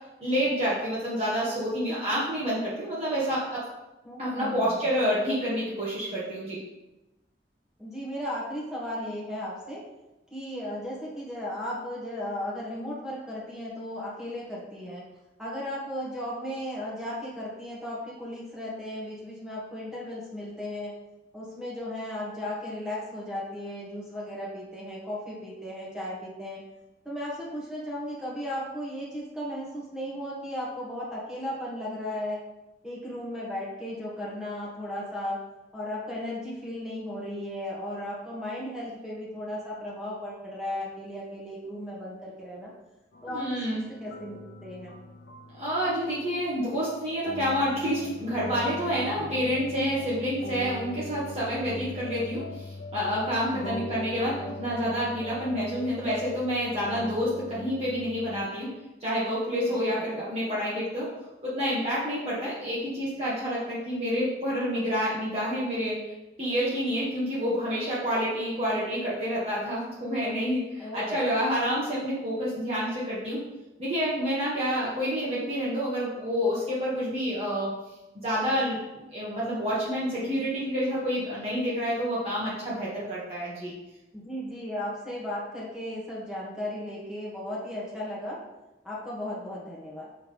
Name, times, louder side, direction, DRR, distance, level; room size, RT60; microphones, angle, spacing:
voice 1, 0.2-3.6 4.2-6.6 43.3-43.8 45.6-58.7 59.0-61.1 61.4-66.1 66.4-73.4 73.8-77.7 78.2-83.7, equal, 35° right, -9 dB, 1.7 m, -28 dB
voice 2, 4.0-4.8 7.8-9.8 10.3-15.0 15.4-20.9 21.3-26.6 27.0-32.4 32.8-35.4 35.7-42.7 43.2-43.4 43.7-45.0 53.5-53.9 59.7-60.1 70.8-71.2 84.1-88.4 88.8-90.1, left 1 dB, 5° right, -7 dB, 1.6 m, -35 dB
sound 1, 43.1-58.5, left 1 dB, 80° left, 0.7 m, -41 dB
6.4 x 3.5 x 5.4 m, 1.0 s
head